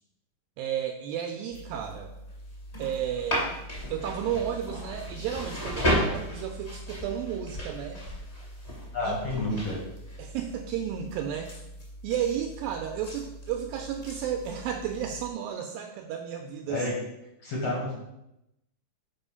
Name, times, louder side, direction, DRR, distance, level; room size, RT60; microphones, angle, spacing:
voice 1, 0.6-2.1 2.8-3.5 3.9-8.0 9.0-9.6 10.2-11.5 12.0-16.9, right 9 dB, 85° right, 4 dB, 2.1 m, -33 dB
sound 1, 1.5-15.3, equal, 20° left, 1.6 m, -35 dB
voice 2, 8.9-9.8 16.7-16.9 17.4-17.9, left 2 dB, 55° left, -4 dB, 1.9 m, -29 dB
5.5 x 5.2 x 5.5 m, 0.88 s
omnidirectional pair, 4.5 m